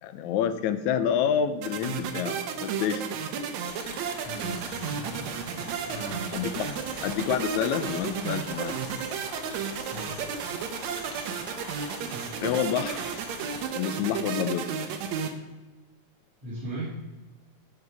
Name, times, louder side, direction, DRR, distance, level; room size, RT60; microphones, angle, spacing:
voice 1, 0.0-3.2 6.3-6.7 7.0-8.8 12.4-13.0 13.8-14.7, left 8 dB, 80° left, 11 dB, 1.9 m, -28 dB
sound 1, 1.6-15.3, right 6 dB, 70° right, 2.0 m, -33 dB
sound 2, 3.6-13.6, left 1 dB, 40° left, 0.7 m, -43 dB
voice 2, 4.2-5.5 5.8-6.5 9.9-10.3 16.4-17.0, right 1 dB, 50° right, -8 dB, 3.3 m, -39 dB
13.5 x 5.5 x 4.7 m, 1.2 s
omnidirectional pair, 3.6 m